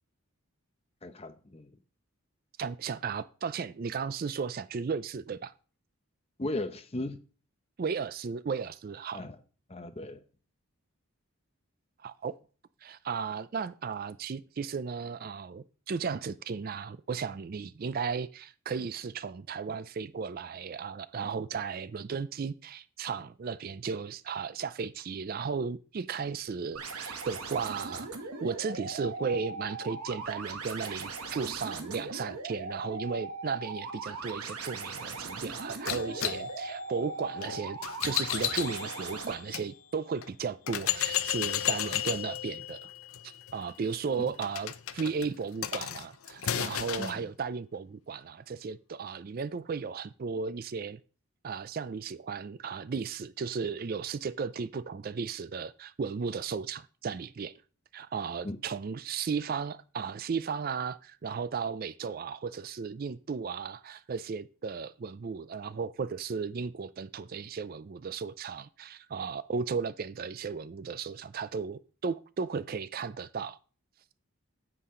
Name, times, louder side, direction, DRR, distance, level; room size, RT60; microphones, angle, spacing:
voice 1, 1.0-1.7 6.4-7.2 9.1-9.4 9.7-10.2 44.2-44.3 47.0-47.3 58.4-58.6, left 1 dB, 25° left, 0.8 m, -37 dB
voice 2, 2.6-5.5 7.8-9.3 12.0-12.3 12.8-28.1 28.4-42.9 43.5-51.0 51.4-57.5 57.9-73.6, right 5 dB, 40° right, 0.3 m, -35 dB
sound 1, 26.8-39.3, right 3 dB, 90° right, 1.5 m, -39 dB
sound 2, 35.9-39.7 40.2-40.3 40.7-47.2, left 10 dB, 75° left, 0.6 m, -34 dB
9.9 x 7.4 x 3.7 m
head